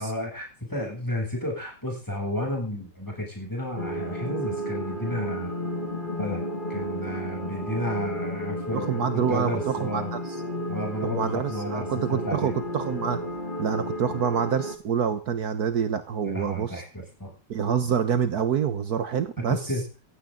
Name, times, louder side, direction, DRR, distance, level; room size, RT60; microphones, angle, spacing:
voice 1, 0.0-5.5 6.2-6.4 6.7-10.1 10.7-11.9 12.2-12.5 16.2-17.3 19.5-19.8, left 1 dB, 10° left, 0 dB, 8.0 m, -32 dB
sound 1, 3.8-14.8, equal, 30° left, 2.8 m, -32 dB
voice 2, 8.7-10.4 11.0-13.2 13.6-16.8 17.5-19.7, right 7 dB, 65° right, 11 dB, 1.6 m, -27 dB
16.5 x 15.5 x 3.9 m, 0.33 s
omnidirectional pair, 1.8 m